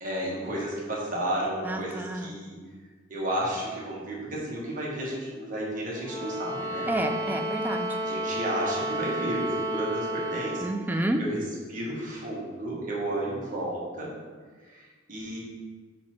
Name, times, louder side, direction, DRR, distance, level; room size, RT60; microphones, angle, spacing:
voice 1, 0.0-2.6 3.1-6.9 8.0-11.4 11.7-14.1 14.6-15.4, right 1 dB, 45° right, -4 dB, 1.5 m, -32 dB
voice 2, 1.7-2.3 6.9-8.0 10.6-11.2, right 1 dB, 10° right, 5 dB, 0.4 m, -29 dB
sound 1, 6.0-10.8, right 1 dB, 10° left, 0.9 m, -31 dB
6.1 x 4.2 x 4.3 m, 1.5 s
head